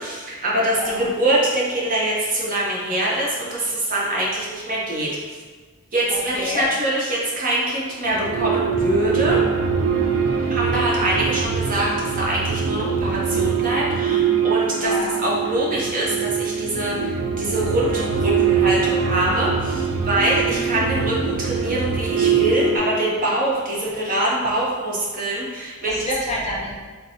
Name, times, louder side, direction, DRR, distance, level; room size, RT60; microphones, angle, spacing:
voice 1, 0.0-5.4 5.9-9.4 10.5-14.9 15.2-26.1, right 1 dB, 40° right, -5 dB, 0.7 m, -24 dB
voice 2, 0.7-1.1 6.3-6.6 10.3-10.5 14.7-15.2 20.4-20.7 25.9-26.8, left 1 dB, 30° left, -4 dB, 0.5 m, -29 dB
sound 1, 8.1-22.8, right 6 dB, 60° right, 0.4 m, -23 dB
4.2 x 2.2 x 2.7 m, 1.5 s
head